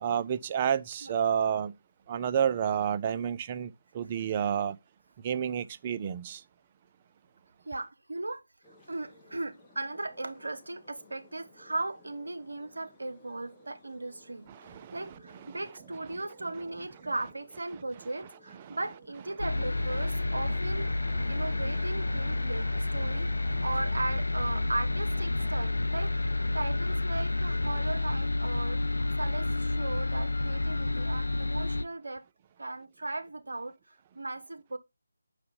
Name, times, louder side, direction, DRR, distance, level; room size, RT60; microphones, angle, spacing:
voice 1, 0.0-1.7 2.1-4.8 5.2-6.4 14.5-15.1 15.5-15.6 18.7-18.8 21.0-21.5 22.3-22.4 23.0-23.1 23.5-23.6, right 8 dB, 25° right, 0.4 m, -30 dB
voice 2, 7.7-8.4 8.9-20.9 21.3-23.3 23.6-28.8 29.2-32.2 32.6-34.8, right 2 dB, 70° right, 1.0 m, -37 dB
sound 1, 8.6-24.3, left 1 dB, 5° left, 1.3 m, -59 dB
sound 2, 19.4-31.8, left 2 dB, 80° left, 0.4 m, -30 dB
6.7 x 4.9 x 3.7 m
figure-of-eight pair, 155°, 0 cm